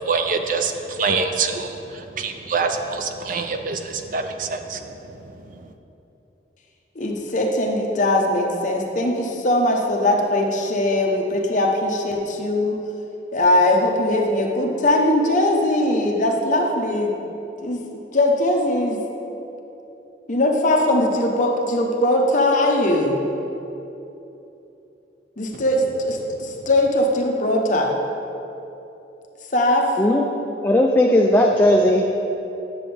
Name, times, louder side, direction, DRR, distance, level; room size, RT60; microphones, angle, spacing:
voice 1, 0.1-4.8, right 4 dB, 50° right, 6 dB, 0.5 m, -25 dB
voice 2, 7.0-12.8 13.3-17.1 17.6-19.0 20.3-23.2 25.4-27.9 29.5-29.9, left 1 dB, 45° left, 1 dB, 0.9 m, -20 dB
voice 3, 30.6-32.1, left 1 dB, 10° left, 0 dB, 0.4 m, -16 dB
9.8 x 6.9 x 3.4 m, 2.9 s
head